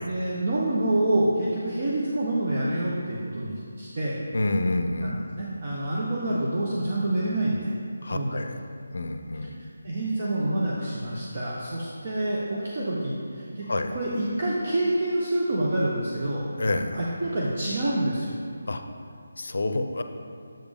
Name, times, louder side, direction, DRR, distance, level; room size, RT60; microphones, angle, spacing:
voice 1, 0.0-4.2 5.0-7.7 8.1-8.4 9.8-13.7 13.9-16.4 16.9-18.3, right 1 dB, 45° right, -5 dB, 0.8 m, -27 dB
voice 2, 4.3-5.3 8.0-8.6 8.9-9.6 13.7-13.9 16.6-17.0 18.7-18.8 19.4-20.0, left 2 dB, 65° left, 7 dB, 0.5 m, -28 dB
7.5 x 5.0 x 3.5 m, 2.4 s
figure-of-eight pair, 160°, 0 cm